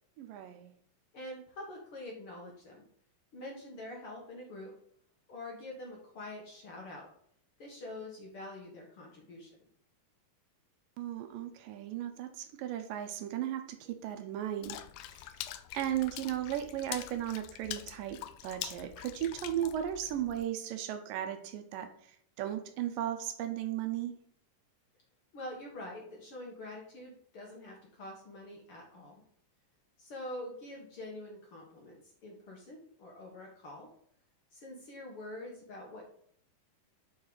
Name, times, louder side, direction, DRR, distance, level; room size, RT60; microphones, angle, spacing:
voice 1, 0.2-0.7 11.0-14.8 15.1-15.3 15.7-24.1, right 11 dB, 80° right, 8 dB, 2.4 m, -36 dB
voice 2, 1.1-2.8 3.3-4.7 5.3-7.1 7.6-9.5 25.3-29.2 30.0-33.9 34.5-36.0, left 1 dB, 50° left, -1 dB, 1.9 m, -45 dB
Water / Splash splatter, 14.6-20.4, left 13 dB, 80° left, 2.1 m, -44 dB
8.1 x 4.7 x 3.9 m, 0.65 s
omnidirectional pair, 3.9 m